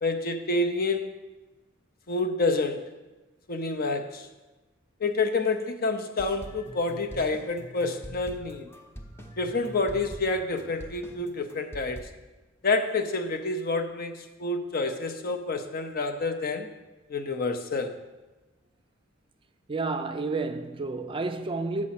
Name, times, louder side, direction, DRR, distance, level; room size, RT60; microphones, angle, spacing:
voice 1, 0.0-1.1 2.1-2.8 3.5-4.3 5.0-8.7 9.4-12.1 12.6-16.7 17.1-18.0, left 3 dB, 50° left, 0.7 m, -28 dB
sound 1, 6.2-12.0, equal, 10° left, 0.8 m, -44 dB
voice 2, 19.7-21.9, right 3 dB, 25° right, 0.4 m, -30 dB
7.4 x 6.1 x 5.8 m
head